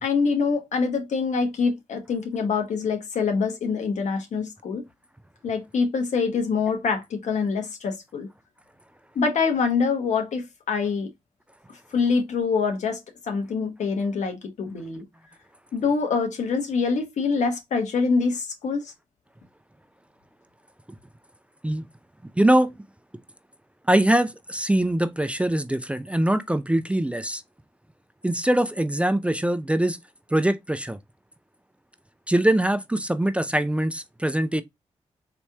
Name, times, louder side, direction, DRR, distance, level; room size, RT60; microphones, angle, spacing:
voice 1, 0.0-4.8 5.4-8.3 9.1-11.1 11.9-15.0 15.7-18.9, left 5 dB, 70° left, 1.0 m, -25 dB
voice 2, 22.4-22.7 23.9-27.4 28.2-30.0 30.3-31.0 32.3-34.6, right 1 dB, 10° right, 0.4 m, -22 dB
4.2 x 2.9 x 2.2 m
supercardioid pair, 50°, 12 cm